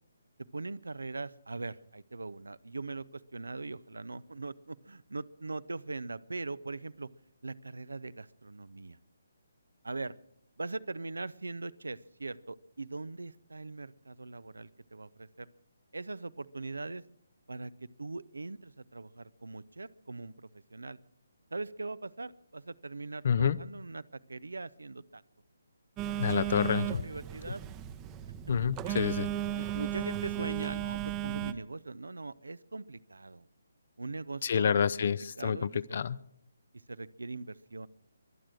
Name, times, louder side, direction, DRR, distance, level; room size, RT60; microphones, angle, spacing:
voice 1, 0.5-7.1 7.4-9.0 9.8-10.2 10.6-15.5 15.9-17.0 17.5-17.7 18.0-21.0 21.5-25.2 26.0-26.5 26.8-27.6 28.8-29.0 29.3-33.5 34.0-35.1 35.4-36.0 36.9-37.9, right 3 dB, 70° right, 18 dB, 0.7 m, -41 dB
voice 2, 23.2-23.6 26.2-27.0 28.5-29.3 34.4-36.2, left 7 dB, 45° left, 17 dB, 0.7 m, -28 dB
Telephone, 26.0-31.5, right 12 dB, 20° right, 0.8 m, -35 dB
23.5 x 8.9 x 6.3 m, 0.72 s
figure-of-eight pair, 140°, 0 cm